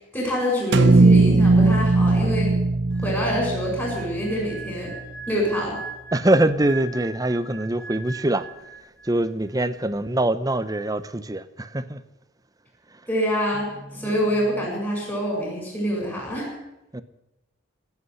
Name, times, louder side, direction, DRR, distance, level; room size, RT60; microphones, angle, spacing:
voice 1, 0.1-2.5 3.0-4.9 5.3-5.8 13.1-16.5, equal, 10° left, 7.0 m, -26 dB
sound 1, 0.7-4.9, right 2 dB, 60° right, 0.8 m, -19 dB
sound 2, 2.9-9.3 9.5-9.8, right 4 dB, 85° left, 2.8 m, -40 dB
voice 2, 6.1-8.5 9.0-12.0 13.9-14.1 16.9-17.0, right 1 dB, 20° right, 0.7 m, -23 dB
17.5 x 8.3 x 10.0 m
head